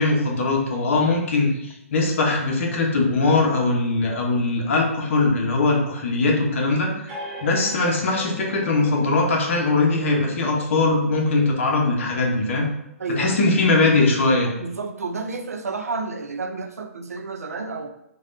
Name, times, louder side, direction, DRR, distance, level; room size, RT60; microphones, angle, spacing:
voice 1, 0.0-6.9 7.4-12.7 13.1-14.5, left 3 dB, 55° left, 0 dB, 0.8 m, -21 dB
sound 1, 7.1-14.3, right 3 dB, 20° right, 1.2 m, -41 dB
voice 2, 13.0-13.4 14.6-17.9, right 3 dB, 85° right, 7 dB, 0.4 m, -30 dB
3.3 x 2.3 x 2.5 m, 0.79 s
hypercardioid pair, 135°, 8 cm